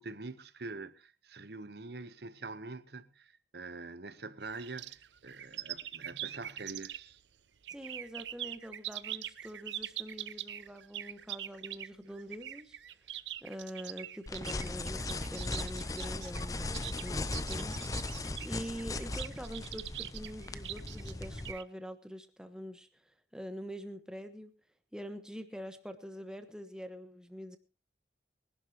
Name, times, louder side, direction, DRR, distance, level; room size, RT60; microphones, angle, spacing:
voice 1, 0.0-7.2, right 3 dB, 65° right, 1.0 m, -45 dB
sound 1, 4.4-7.2 7.6-21.6, right 12 dB, 85° right, 0.7 m, -43 dB
voice 2, 7.7-12.8 13.4-17.8 18.4-23.0 23.3-24.5 24.9-27.6, equal, 5° right, 1.2 m, -44 dB
sound 2, 14.3-21.5, left 2 dB, 20° left, 0.6 m, -38 dB
23.5 x 11.5 x 2.9 m
head